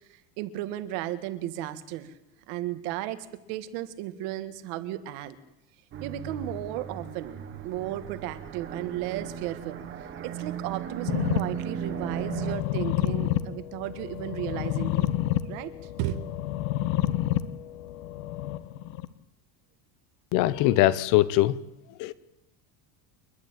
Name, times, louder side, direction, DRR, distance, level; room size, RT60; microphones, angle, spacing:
voice 1, 0.1-2.1 2.5-5.4 6.0-7.4 7.6-9.8 10.2-15.1 15.5-15.7 16.0-16.2, right 13 dB, 55° right, 11 dB, 1.9 m, -34 dB
sound 1, 5.9-12.6, right 9 dB, 25° right, 1.8 m, -36 dB
sound 2, 11.1-19.0, left 14 dB, 60° left, 1.4 m, -30 dB
voice 2, 20.3-21.5 22.0-22.1, left 16 dB, 40° left, 17 dB, 0.8 m, -21 dB
29.0 x 12.0 x 9.1 m, 0.92 s
cardioid pair, 180°, 47 cm